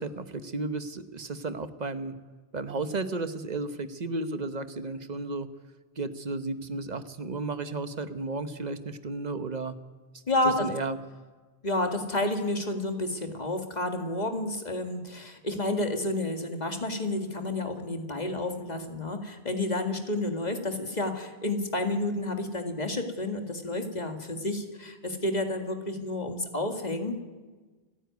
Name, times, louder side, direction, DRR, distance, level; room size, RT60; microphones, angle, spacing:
voice 1, 0.0-2.2 2.5-5.5 6.0-9.8 10.1-11.0, right 3 dB, 45° right, 11 dB, 1.1 m, -33 dB
voice 2, 10.3-10.7 11.6-27.2, left 2 dB, 40° left, 6 dB, 2.2 m, -30 dB
28.5 x 10.0 x 9.4 m, 1.3 s
omnidirectional pair, 1.1 m